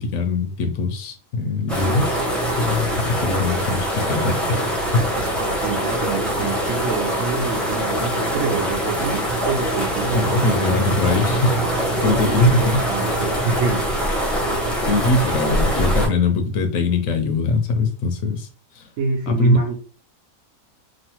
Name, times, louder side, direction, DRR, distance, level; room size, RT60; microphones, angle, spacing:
voice 1, 0.0-2.2 2.6-5.1 10.0-12.8 14.9-18.5 18.7-18.9 19.3-19.6, left 2 dB, 75° left, 6 dB, 1.0 m, -22 dB
sound 1, 1.7-16.1, right 1 dB, ahead, 0.5 m, -23 dB
voice 2, 5.6-10.8 12.0-13.9 19.0-19.7, right 4 dB, 70° right, -1 dB, 1.0 m, -27 dB
3.0 x 2.2 x 2.8 m, 0.36 s
omnidirectional pair, 1.5 m